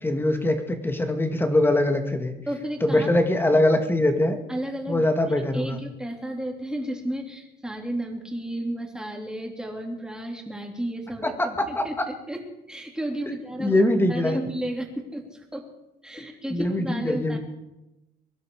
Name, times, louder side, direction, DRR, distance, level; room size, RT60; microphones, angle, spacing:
voice 1, 0.0-2.3 2.8-4.4 4.9-5.8 11.6-11.8 13.6-14.4 16.5-17.4, left 1 dB, 15° left, 6 dB, 2.2 m, -22 dB
voice 2, 2.5-3.1 4.5-12.4 12.7-15.7 16.0-17.4, right 1 dB, 5° right, 1 dB, 3.5 m, -33 dB
23.5 x 12.0 x 5.0 m, 0.94 s
cardioid pair, 110°, 17 cm